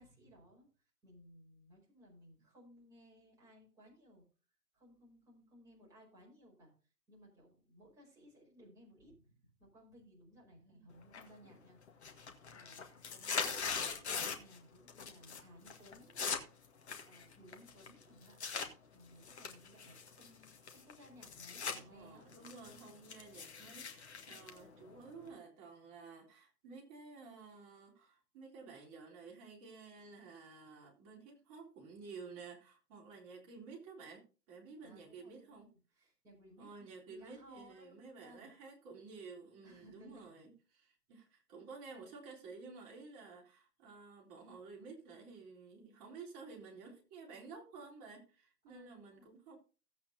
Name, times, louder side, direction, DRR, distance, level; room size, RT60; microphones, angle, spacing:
voice 1, 0.0-4.3 4.7-12.1 12.5-16.3 17.0-18.4 18.9-22.3 22.6-22.7 34.8-38.5 39.6-40.3 48.6-49.3, equal, 5° right, 5.0 m, -61 dB
sound 1, 11.1-11.6 11.9-14.6 14.9-15.4 15.7-18.7 19.2-21.8 22.1-25.3, left 5 dB, 40° left, 1.7 m, -41 dB
voice 2, 21.7-35.7 36.6-49.6, right 4 dB, 25° right, 3.8 m, -53 dB
16.5 x 8.5 x 2.8 m
figure-of-eight pair, 135°, 48 cm